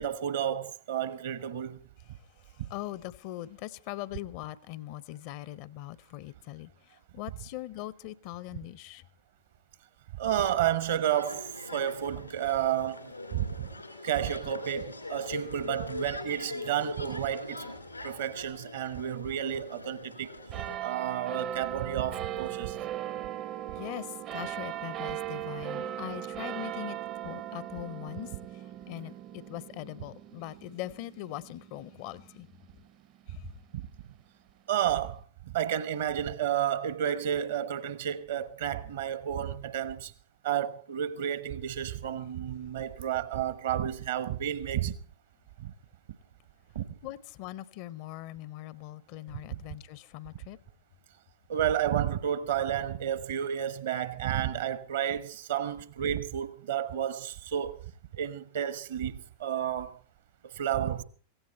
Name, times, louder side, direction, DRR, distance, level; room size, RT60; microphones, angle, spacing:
voice 1, 0.0-1.8 2.6-2.7 10.1-13.7 14.0-17.7 18.0-20.3 20.6-22.8 33.7-33.9 34.7-40.1 40.4-44.9 45.6-45.7 46.7-46.8 51.5-57.8 58.1-60.0 60.4-61.0, right 10 dB, 60° right, 1.0 m, -31 dB
voice 2, 2.4-9.0 23.7-32.5 33.3-33.5 47.0-50.6, left 15 dB, 45° left, 0.6 m, -41 dB
sound 1, 11.0-20.8, left 2 dB, 85° left, 2.7 m, -42 dB
sound 2, 20.5-33.4 34.0-34.1, right 11 dB, 35° right, 0.6 m, -39 dB
17.0 x 16.0 x 4.3 m
figure-of-eight pair, 90°, 0 cm